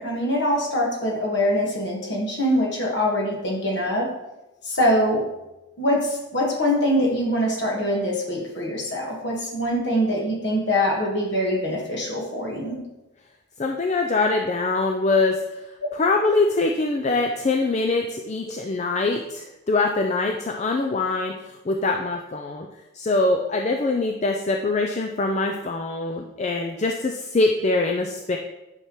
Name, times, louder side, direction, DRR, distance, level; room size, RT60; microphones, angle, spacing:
voice 1, 0.0-4.1 4.6-5.3 5.8-12.8, equal, 55° left, -1 dB, 1.7 m, -23 dB
voice 2, 13.6-15.7 15.9-22.7 22.9-28.4, left 3 dB, 35° left, 3 dB, 0.4 m, -23 dB
9.7 x 5.8 x 3.1 m, 0.99 s
head